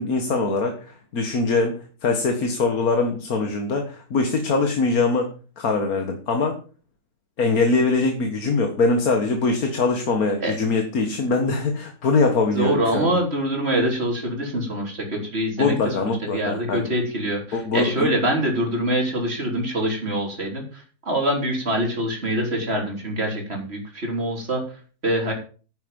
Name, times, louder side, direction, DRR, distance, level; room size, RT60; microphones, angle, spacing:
voice 1, 0.0-5.3 5.6-6.6 7.4-13.2 15.6-16.9 17.5-18.1, left 3 dB, 65° left, 5 dB, 1.9 m, -22 dB
voice 2, 12.5-24.6 25.0-25.3, right 1 dB, 40° right, 1 dB, 4.2 m, -25 dB
10.0 x 9.7 x 5.3 m, 0.37 s
omnidirectional pair, 1.7 m